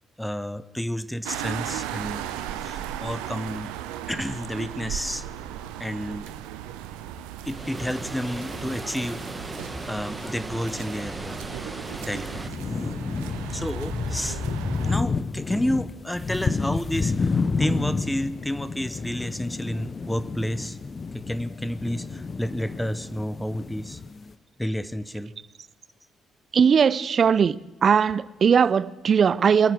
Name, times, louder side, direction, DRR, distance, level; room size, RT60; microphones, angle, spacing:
voice 1, 0.2-2.2 2.6-3.7 4.1-5.2 5.8-6.3 7.5-9.2 9.9-11.5 12.0-12.5 13.5-14.4 14.8-20.8 21.1-24.0 24.6-25.3, equal, 5° left, 1.0 m, -30 dB
sound 1, 1.2-15.0, right 11 dB, 75° right, 0.8 m, -36 dB
Water, 7.4-12.5, right 2 dB, 15° right, 1.6 m, -37 dB
sound 2, 11.9-12.0 12.3-24.3, left 4 dB, 40° left, 0.9 m, -30 dB
voice 2, 26.5-27.6 27.8-29.7, right 7 dB, 45° right, 0.5 m, -19 dB
23.0 x 9.1 x 6.3 m
hypercardioid pair, 45°, 0 cm